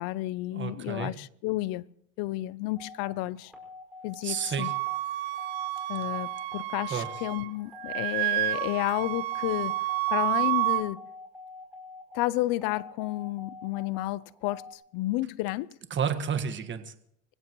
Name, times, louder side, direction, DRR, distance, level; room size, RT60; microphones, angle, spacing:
voice 1, 0.0-1.9 2.2-3.5 4.0-4.7 5.9-9.8 10.1-11.0 12.1-15.7, left 18 dB, 70° left, 0.7 m, -31 dB
voice 2, 0.5-1.1 4.2-4.7 6.9-7.1 15.9-16.9, right 7 dB, 30° right, 1.6 m, -31 dB
sound 1, 2.8-14.7, left 3 dB, ahead, 5.3 m, -47 dB
Wind instrument woodwind instrument, 4.6-7.5 7.8-10.8, right 17 dB, 75° right, 1.1 m, -30 dB
26.5 x 16.5 x 3.1 m
supercardioid pair, 115°, 36 cm